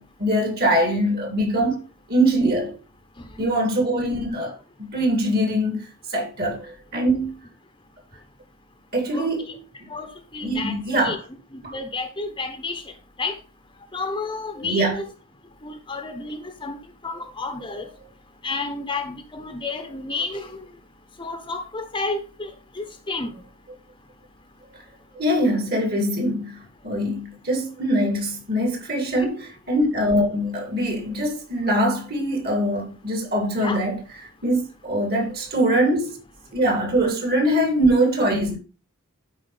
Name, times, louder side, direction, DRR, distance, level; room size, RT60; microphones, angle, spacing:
voice 1, 0.0-1.8 2.1-2.8 3.4-4.6 4.9-7.3 8.9-9.5 10.4-11.2 11.6-11.7 14.6-15.0 25.1-34.0 34.4-36.2 36.5-38.6, right 1 dB, 45° right, 3.0 m, -23 dB
voice 2, 3.2-3.5 9.1-9.6 9.9-11.2 11.5-12.9 13.2-13.4 13.9-15.0 15.6-16.8 17.0-17.9 18.4-20.6 21.2-22.5 22.7-23.3 29.2-29.3 33.5-33.8, left 3 dB, 20° left, 1.0 m, -31 dB
12.5 x 5.0 x 3.4 m
head